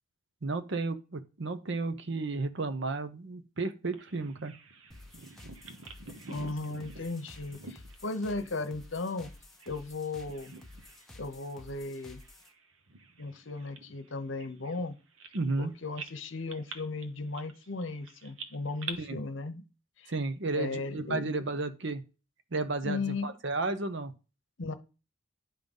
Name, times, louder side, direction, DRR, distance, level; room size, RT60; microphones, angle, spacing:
voice 1, 0.4-4.5 15.3-15.7 19.0-19.2 20.1-22.0 22.5-24.1, right 3 dB, 60° right, 0.8 m, -33 dB
Bird vocalization bird call bird song, 3.9-9.9 10.2-11.1 11.4-11.6 12.2-15.6 16.0-18.9, right 4 dB, 85° right, 1.1 m, -48 dB
sound 1, 4.9-12.5, left 2 dB, ahead, 0.9 m, -52 dB
voice 2, 6.3-9.3 9.7-10.5 11.1-12.2 13.2-14.9 15.6-19.6 20.0-20.1 20.5-21.3 22.8-23.3 24.6-24.8, left 3 dB, 65° left, 0.9 m, -36 dB
10.5 x 3.8 x 5.3 m
head